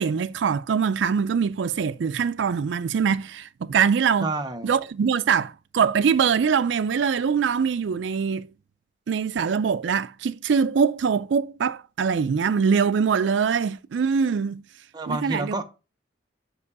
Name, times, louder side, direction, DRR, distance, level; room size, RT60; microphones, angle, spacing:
voice 1, 0.0-4.3 4.6-8.5 9.1-14.6 15.1-15.6, right 6 dB, 85° right, 0.4 m, -23 dB
voice 2, 4.2-4.7 14.9-15.6, right 2 dB, 25° right, 0.7 m, -29 dB
5.3 x 4.8 x 4.7 m
head